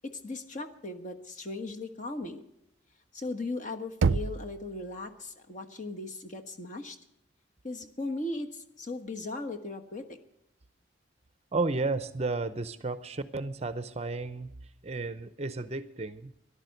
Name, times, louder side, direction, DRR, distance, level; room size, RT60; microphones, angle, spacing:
voice 1, 0.0-2.4 3.1-7.0 7.6-10.2, left 2 dB, 40° left, 4 dB, 1.3 m, -38 dB
Knock, 4.0-4.9, right 4 dB, 80° right, 0.4 m, -28 dB
voice 2, 11.5-14.5 14.8-16.3, right 3 dB, 30° right, 14 dB, 0.6 m, -32 dB
13.5 x 11.5 x 6.6 m, 0.81 s
head